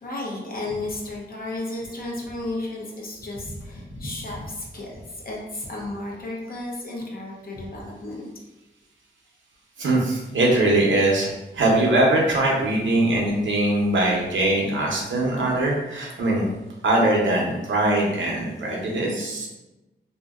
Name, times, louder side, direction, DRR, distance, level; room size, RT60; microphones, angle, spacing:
voice 1, 0.0-8.3, left 2 dB, 50° left, -3 dB, 0.8 m, -33 dB
voice 2, 9.8-16.5 16.8-19.5, right 1 dB, 75° right, -2 dB, 0.8 m, -21 dB
2.8 x 2.6 x 2.4 m, 1.0 s
cardioid pair, 70°, 20 cm